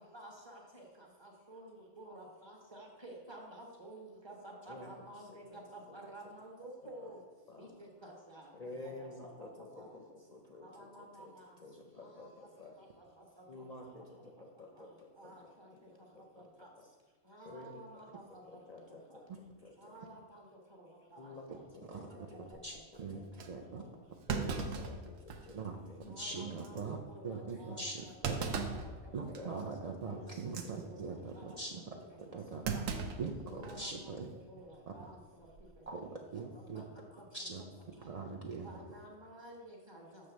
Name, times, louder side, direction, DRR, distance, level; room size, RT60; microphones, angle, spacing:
voice 1, 0.0-7.2 7.6-9.5 9.8-9.9 10.6-11.5 12.0-12.3 12.8-12.9 13.2-13.3 13.6-13.7 14.7-14.9 15.2-15.9 16.2-16.3 16.6-16.7 17.3-18.8 19.1-19.2 19.8-22.8 23.3-23.4 24.9-25.0 26.1-29.7 30.1-31.6 31.9-32.0 32.3-32.4 32.7-32.8 33.6-35.2 35.8-37.2 37.6-37.7 38.0-38.1 38.6-40.3, right 1 dB, 25° right, -1 dB, 1.0 m, -53 dB
voice 2, 5.3-5.6 5.9-6.0 7.0-7.1 7.5-7.8 8.5-11.3 11.6-12.8 13.5-15.8 16.1-16.5 17.5-17.8 18.5-19.2 19.6-19.9 21.2-22.6 23.1-23.6 24.3-26.5 26.8-26.9 27.3-27.4 27.7-27.8 29.3-32.6 33.5-33.8 36.7-36.9, left 2 dB, 45° left, 0 dB, 0.5 m, -51 dB
Thump thud, 22.5-22.8 23.4-23.5 24.3-25.6 26.0-26.1 26.6-26.8 28.2-28.9 29.3-29.6 30.4-30.7 32.6-33.9 34.2-34.3 35.4-35.7, right 5 dB, 85° right, 1.0 m, -37 dB
voice 3, 22.6-23.2 23.5-23.8 25.5-25.7 26.2-27.0 27.2-28.6 29.1-32.0 32.3-32.6 33.2-34.3 35.9-36.0 36.3-36.8 37.3-37.6 38.0-38.7, right 4 dB, 60° right, 0 dB, 0.4 m, -41 dB
6.8 x 3.2 x 6.1 m, 1.3 s
omnidirectional pair, 1.3 m